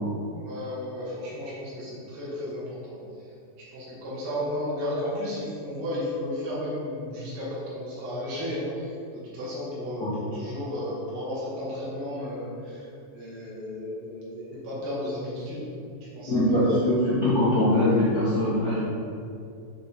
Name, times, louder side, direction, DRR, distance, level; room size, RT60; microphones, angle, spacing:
voice 1, 0.3-3.0 3.6-12.9 13.1-15.7 16.1-16.6, left 1 dB, 55° right, -8 dB, 2.3 m, -33 dB
voice 2, 16.3-18.8, left 1 dB, 70° left, -13 dB, 0.8 m, -22 dB
5.9 x 4.7 x 4.1 m, 2.6 s
omnidirectional pair, 4.0 m